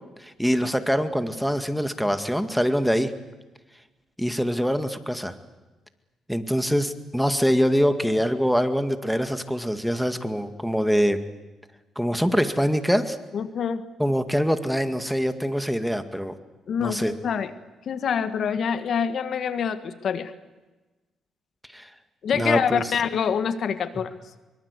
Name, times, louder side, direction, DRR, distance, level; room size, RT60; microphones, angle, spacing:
voice 1, 0.2-3.1 4.2-5.3 6.3-11.2 12.0-13.2 14.0-16.3 16.8-17.1 21.7-21.9 22.3-22.9, equal, ahead, 9 dB, 2.1 m, -24 dB
voice 2, 13.3-13.8 16.7-17.5 17.9-20.3 22.2-24.1, left 7 dB, 60° left, 11 dB, 1.6 m, -26 dB
24.0 x 24.0 x 8.4 m, 1.2 s
cardioid pair, 90°, 0 cm